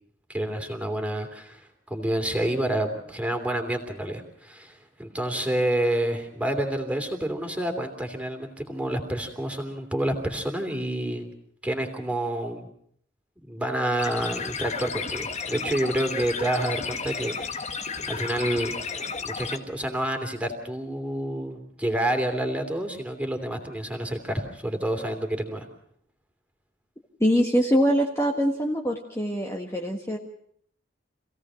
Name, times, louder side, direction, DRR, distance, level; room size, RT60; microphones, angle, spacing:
voice 1, 0.3-11.3 11.6-12.7 13.4-17.8 18.1-18.7 19.2-25.7, right 1 dB, 5° right, 4 dB, 3.0 m, -28 dB
sound 1, 14.0-19.6, left 5 dB, 35° left, 1.4 m, -33 dB
voice 2, 27.2-30.2, equal, 15° left, -1 dB, 1.6 m, -23 dB
26.5 x 17.0 x 6.3 m, 0.67 s
head